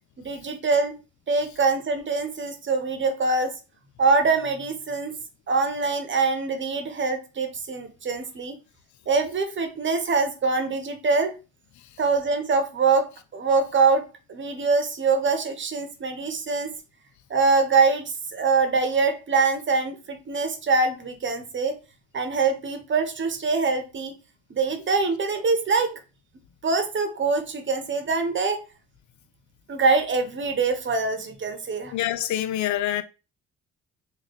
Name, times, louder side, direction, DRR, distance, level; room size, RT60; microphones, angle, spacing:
voice 1, 0.2-0.9 1.3-3.5 4.0-5.1 5.5-8.6 9.1-11.3 12.0-13.1 13.3-14.0 14.3-16.7 17.3-21.8 22.1-24.1 24.5-26.0 26.6-28.6 29.7-31.9, right 4 dB, 40° right, 1.0 m, -24 dB
voice 2, 31.9-33.0, left 12 dB, 70° left, 0.6 m, -26 dB
3.8 x 2.6 x 3.4 m
cardioid pair, 90°, 30 cm